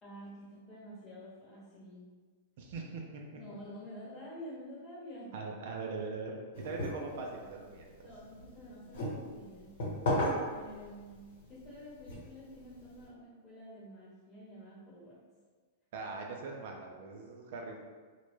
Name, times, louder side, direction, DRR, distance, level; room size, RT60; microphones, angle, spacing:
voice 1, 0.0-2.1 3.3-5.4 8.0-9.7 10.5-11.2 11.5-15.2, equal, 30° left, -8 dB, 0.9 m, -49 dB
voice 2, 2.6-3.2 5.3-8.1 15.9-17.8, right 3 dB, 65° right, 1 dB, 0.3 m, -41 dB
sound 1, 6.5-13.1, left 1 dB, 65° left, 1.0 m, -38 dB
2.1 x 2.0 x 3.0 m, 1.5 s
hypercardioid pair, 110°, 0 cm